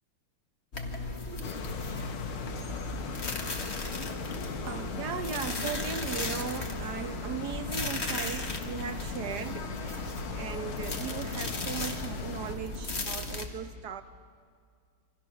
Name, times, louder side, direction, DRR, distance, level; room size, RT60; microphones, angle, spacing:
sound 1, 0.7-13.5, left 2 dB, 35° left, 1.9 m, -36 dB
sound 2, 1.4-12.5, left 5 dB, 85° left, 2.2 m, -39 dB
voice 1, 4.7-14.0, right 7 dB, 60° right, 1.5 m, -38 dB
28.5 x 25.0 x 6.3 m
omnidirectional pair, 2.2 m